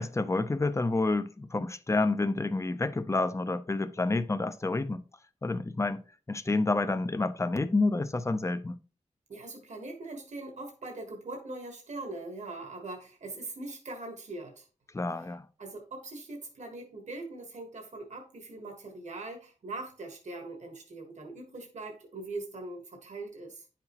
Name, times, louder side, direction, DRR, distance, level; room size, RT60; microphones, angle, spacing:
voice 1, 0.0-5.0 5.4-6.0 6.3-8.8 14.9-15.5, left 3 dB, 25° left, 0.5 m, -29 dB
voice 2, 9.3-14.6 15.6-23.6, right 2 dB, 70° right, 1.4 m, -41 dB
9.8 x 5.9 x 2.9 m
wide cardioid pair, 95°, 12 cm